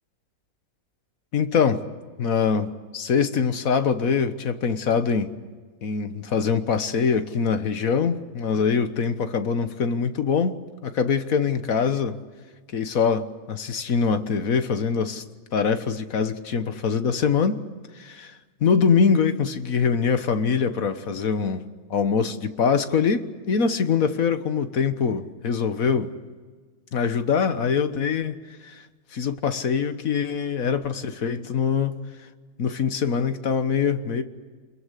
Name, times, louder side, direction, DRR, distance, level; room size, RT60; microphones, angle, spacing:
voice 1, 1.3-1.8 2.2-5.3 5.8-10.6 10.8-12.2 12.7-15.2 15.5-17.6 17.9-21.6 21.9-26.1 26.9-28.4 28.6-28.8 29.1-32.0 32.6-34.2, left 6 dB, 55° left, 1.6 m, -23 dB
29.0 x 21.5 x 8.3 m
omnidirectional pair, 1.9 m